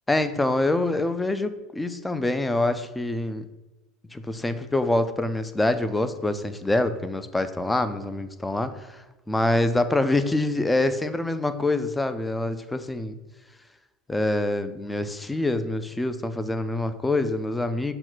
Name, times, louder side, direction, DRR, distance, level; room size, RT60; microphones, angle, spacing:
voice 1, 0.1-3.4 4.1-13.1 14.1-17.9, left 2 dB, 10° left, 11 dB, 0.4 m, -25 dB
5.9 x 2.2 x 3.9 m, 1.1 s
hypercardioid pair, 90°, 0 cm